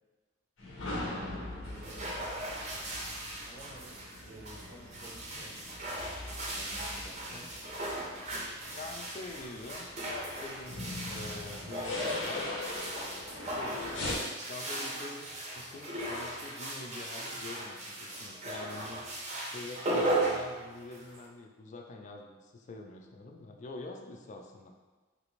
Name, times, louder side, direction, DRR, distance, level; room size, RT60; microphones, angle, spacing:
sound 1, 0.6-14.2, left 2 dB, 85° left, 0.7 m, -42 dB
voice 1, 1.0-2.1 3.4-4.0 4.2-5.6 6.5-7.5, right 1 dB, 75° right, -2 dB, 0.7 m, -51 dB
sound 2, 1.7-21.3, right 1 dB, 35° right, 0.6 m, -37 dB
voice 2, 8.7-13.3 13.5-14.0 14.5-19.1 19.5-24.7, left 3 dB, 40° left, 3 dB, 0.3 m, -45 dB
3.3 x 2.5 x 3.1 m, 1.3 s
head